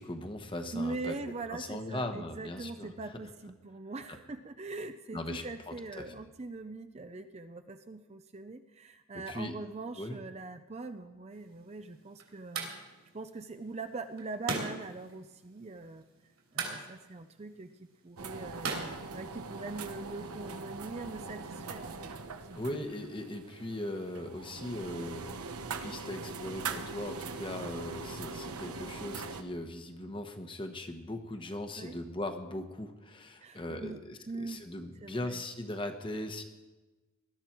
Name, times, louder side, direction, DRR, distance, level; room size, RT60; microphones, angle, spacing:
voice 1, 0.0-1.2 1.5-2.9 5.1-6.1 9.3-9.5 10.0-10.2 22.5-36.4, left 1 dB, 25° left, 6 dB, 1.1 m, -39 dB
voice 2, 0.7-12.7 13.1-16.0 16.5-22.1 22.5-22.8 31.8-32.0 33.4-34.6 35.0-35.4, right 3 dB, 30° right, 8 dB, 0.5 m, -42 dB
sound 1, 11.3-19.8, right 4 dB, 70° right, 3.2 m, -42 dB
sound 2, 18.2-29.4, right 4 dB, 90° right, 1.1 m, -42 dB
19.5 x 12.5 x 4.5 m, 1.2 s
head